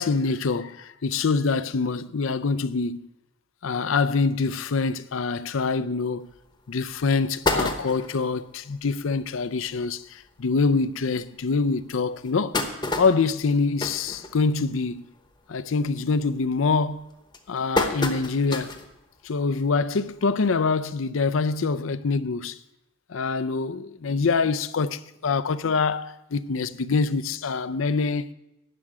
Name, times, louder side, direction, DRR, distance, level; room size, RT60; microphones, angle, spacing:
voice 1, 0.0-3.0 3.6-6.3 6.7-12.6 13.0-15.0 15.5-17.0 17.5-18.7 19.2-22.6 23.1-28.3, left 4 dB, 75° left, 0.5 m, -25 dB
sound 1, 6.3-6.4 6.9-7.0 7.2-8.3 8.8-8.9 9.2-9.3 9.6-9.8 10.5-10.6 11.1-11.2 12.0-14.8 15.2-15.5 15.9-16.3 16.9-18.9 19.3-19.4 20.6-20.7, left 2 dB, 20° left, 1.0 m, -29 dB
11.0 x 6.1 x 8.9 m
head